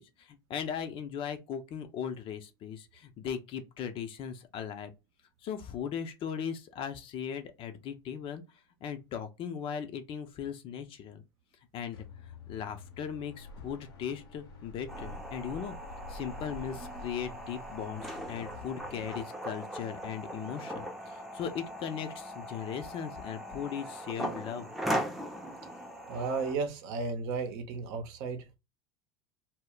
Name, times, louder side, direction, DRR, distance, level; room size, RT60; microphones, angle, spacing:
voice 1, 0.0-4.9 5.4-8.4 8.8-11.2 11.7-12.0 12.5-15.8 16.1-24.7, left 8 dB, 45° left, 0.6 m, -38 dB
sound 1, 11.9-19.3, left 2 dB, 80° left, 0.7 m, -48 dB
sound 2, 14.9-26.5, equal, ahead, 0.6 m, -39 dB
voice 2, 26.1-28.6, right 4 dB, 65° right, 0.7 m, -34 dB
2.1 x 2.1 x 3.7 m
hypercardioid pair, 90°, 13 cm